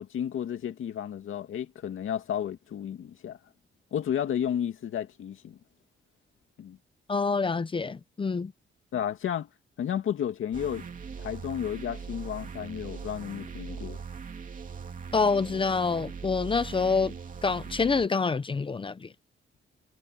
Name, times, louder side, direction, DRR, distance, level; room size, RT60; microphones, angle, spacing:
voice 1, 0.0-3.4 3.9-5.6 6.6-6.8 8.9-9.5 9.8-10.8 11.2-14.0, left 9 dB, 80° left, 2.3 m, -32 dB
voice 2, 7.1-8.5 15.1-17.1 17.4-19.1, left 4 dB, 25° left, 0.7 m, -26 dB
sound 1, 10.5-18.1, right 6 dB, 40° right, 2.7 m, -40 dB
wide cardioid pair, 165°, 20 cm